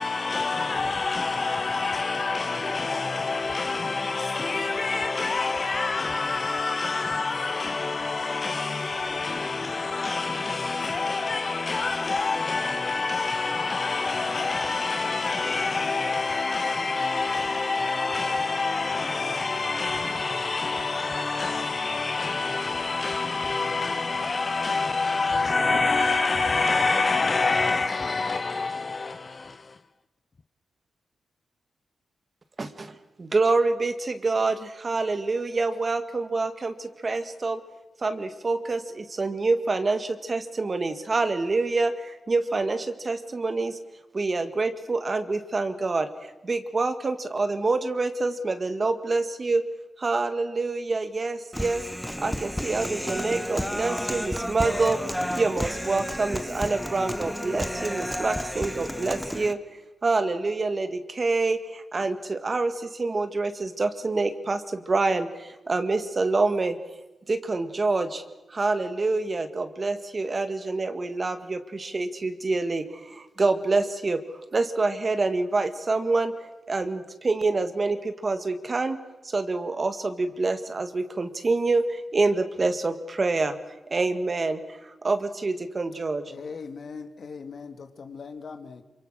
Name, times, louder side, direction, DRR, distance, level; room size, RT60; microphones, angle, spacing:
voice 1, 0.0-29.8, left 3 dB, 35° left, 0.8 m, -27 dB
voice 2, 32.6-37.6 38.0-43.8 44.1-49.6 50.0-51.8 52.2-55.0 55.3-59.6 60.0-66.8 67.3-68.2 68.5-74.2 74.5-76.3 76.7-79.0 79.2-83.6 83.9-86.2, right 3 dB, 35° right, 2.0 m, -26 dB
Human voice, 51.5-59.5, equal, ahead, 1.3 m, -31 dB
voice 3, 86.3-88.8, left 5 dB, 60° left, 2.3 m, -40 dB
28.0 x 25.5 x 6.6 m
wide cardioid pair, 120°, 0 cm